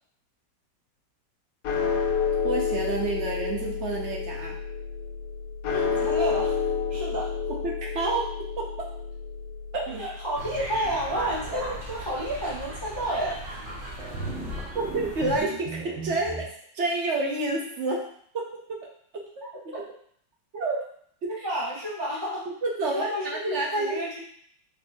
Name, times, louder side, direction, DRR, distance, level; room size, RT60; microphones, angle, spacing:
sound 1, 1.6-12.1, left 6 dB, 75° left, 0.8 m, -30 dB
voice 1, 2.4-4.6 7.5-8.3 8.6-8.9 9.7-10.1 14.8-16.4 16.7-18.0 18.3-18.9 19.1-19.2 19.7-19.9 20.5-20.8 21.2-21.5 22.6-24.2, right 2 dB, 65° right, -1 dB, 0.7 m, -29 dB
voice 2, 5.7-6.6 6.9-7.4 10.0-13.5 19.4-19.5 21.3-22.5 22.8-24.2, equal, 35° left, -6 dB, 0.4 m, -31 dB
sound 2, 10.3-15.4, right 1 dB, 30° right, 1.3 m, -38 dB
sound 3, 14.0-16.4, right 2 dB, 80° right, 1.8 m, -36 dB
4.4 x 2.7 x 4.3 m, 0.63 s
omnidirectional pair, 2.0 m